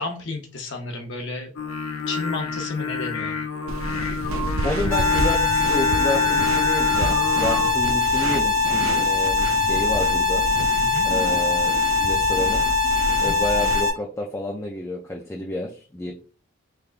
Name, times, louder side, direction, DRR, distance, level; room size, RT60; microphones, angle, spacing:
voice 1, 0.0-1.5 2.1-3.4 10.8-11.1 13.1-13.4, left 3 dB, 55° left, 4 dB, 0.7 m, -32 dB
Singing, 1.6-7.7, left 5 dB, 90° left, 0.5 m, -28 dB
sound 1, 3.7-13.8, right 2 dB, 80° right, 0.5 m, -30 dB
voice 2, 4.6-10.4 11.0-12.6 13.2-16.1, left 1 dB, 15° left, -2 dB, 0.3 m, -30 dB
sound 2, 4.9-13.9, left 4 dB, 15° right, 0.8 m, -22 dB
3.5 x 3.3 x 2.4 m, 0.38 s
head